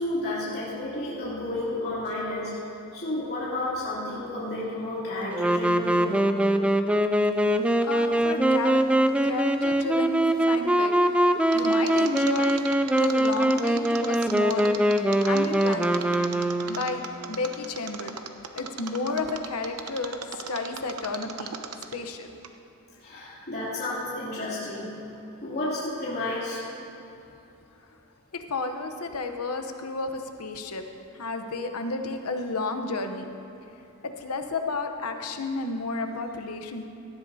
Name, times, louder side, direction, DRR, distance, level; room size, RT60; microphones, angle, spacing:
voice 1, 0.0-2.5 2.9-6.2 23.0-24.9 25.4-26.6, left 1 dB, 45° left, -9 dB, 2.9 m, -31 dB
Wind instrument woodwind instrument, 5.3-17.0, right 1 dB, 5° right, 0.3 m, -23 dB
voice 2, 7.8-8.8 9.2-10.9 11.5-14.7 15.2-16.0 16.7-17.0 17.3-18.1 18.5-21.5 21.9-22.3 28.3-30.8 31.1-33.3 34.0-36.9, left 3 dB, 75° left, 6 dB, 0.9 m, -32 dB
Mechanisms, 11.5-22.1 22.4-22.5, right 7 dB, 75° right, 0.7 m, -37 dB
18.0 x 13.0 x 2.8 m, 2.8 s
head